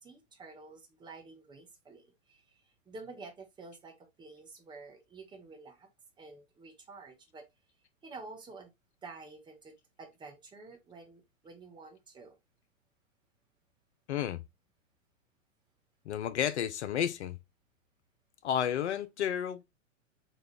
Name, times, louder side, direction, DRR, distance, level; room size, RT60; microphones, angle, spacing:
voice 1, 0.0-2.6 2.9-5.9 6.2-7.4 8.0-8.7 9.0-12.4, right 3 dB, 10° right, 0.7 m, -50 dB
voice 2, 14.1-14.4 16.1-17.4 18.4-19.6, left 9 dB, 60° left, 0.5 m, -31 dB
4.1 x 2.3 x 3.4 m
figure-of-eight pair, 100°, 39 cm